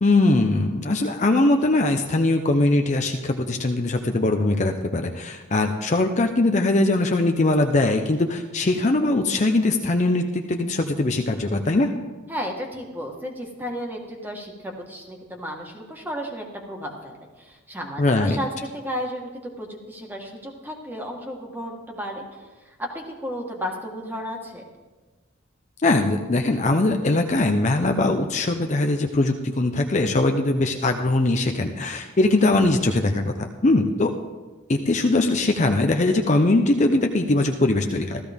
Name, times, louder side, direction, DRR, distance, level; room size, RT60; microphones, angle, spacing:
voice 1, 0.0-11.9 18.0-18.4 25.8-34.1 34.7-38.2, left 2 dB, 35° left, 5 dB, 0.6 m, -21 dB
voice 2, 12.3-24.6, equal, 10° right, 1 dB, 1.5 m, -33 dB
15.5 x 13.5 x 3.5 m, 1.3 s
head